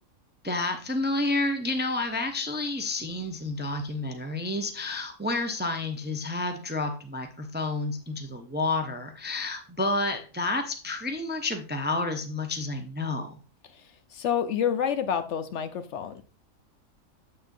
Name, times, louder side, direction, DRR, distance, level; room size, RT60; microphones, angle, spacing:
voice 1, 0.4-13.4, left 2 dB, 10° right, 6 dB, 0.5 m, -30 dB
voice 2, 14.1-16.2, left 8 dB, 65° left, 10 dB, 0.9 m, -28 dB
7.5 x 6.7 x 2.6 m, 0.37 s
omnidirectional pair, 1.4 m